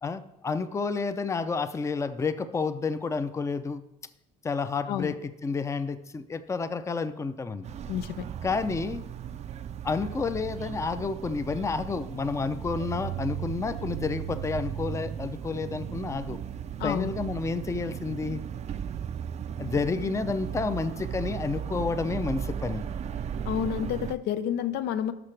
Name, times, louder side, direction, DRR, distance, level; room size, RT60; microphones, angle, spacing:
voice 1, 0.0-3.8 4.4-7.7 8.4-9.0 9.8-16.4 16.8-18.4 19.6-22.8, left 4 dB, 15° left, 12 dB, 0.5 m, -30 dB
sound 1, 7.6-24.2, right 9 dB, 40° right, 0.4 m, -36 dB
voice 2, 7.9-8.3 16.8-17.1 23.4-25.1, left 9 dB, 85° left, 11 dB, 0.6 m, -29 dB
12.0 x 5.8 x 3.3 m, 0.87 s
cardioid pair, 110°, 17 cm